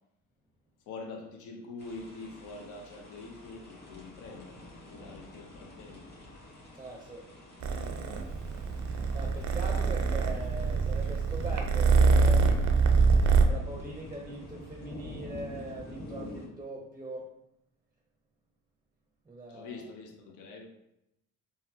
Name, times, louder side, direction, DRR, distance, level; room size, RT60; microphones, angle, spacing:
voice 1, 0.9-6.0 19.5-20.7, left 3 dB, 80° left, 0.6 m, -45 dB
sound 1, 1.8-16.5, left 1 dB, 35° left, 1.2 m, -47 dB
voice 2, 6.8-7.2 9.1-12.6 13.4-17.3 19.3-19.8, right 2 dB, 15° right, 0.5 m, -41 dB
Purr, 7.6-13.4, right 4 dB, 70° right, 0.5 m, -24 dB
3.9 x 2.0 x 2.6 m
cardioid pair, 90°, 30 cm